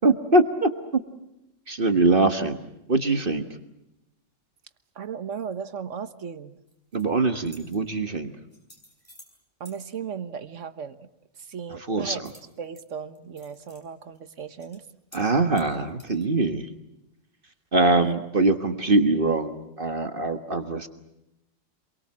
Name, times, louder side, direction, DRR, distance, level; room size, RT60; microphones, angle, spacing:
voice 1, 0.0-0.7 1.7-2.6 2.9-3.4 6.9-8.3 11.9-12.3 15.1-16.7 17.7-20.9, right 2 dB, 45° right, 8 dB, 1.6 m, -23 dB
voice 2, 4.9-6.6 9.6-11.1 11.3-12.2 12.6-14.8 18.0-18.1, right 7 dB, 70° right, 11 dB, 1.6 m, -36 dB
sound 1, 6.7-7.0 7.4-7.8 8.5-9.3 9.6-9.8 12.2-12.8 13.1-13.8 14.1-14.2 14.6-14.8 15.1-15.3 15.5-16.3, equal, 20° left, 6.7 m, -52 dB
27.5 x 23.0 x 7.6 m, 0.90 s
omnidirectional pair, 1.3 m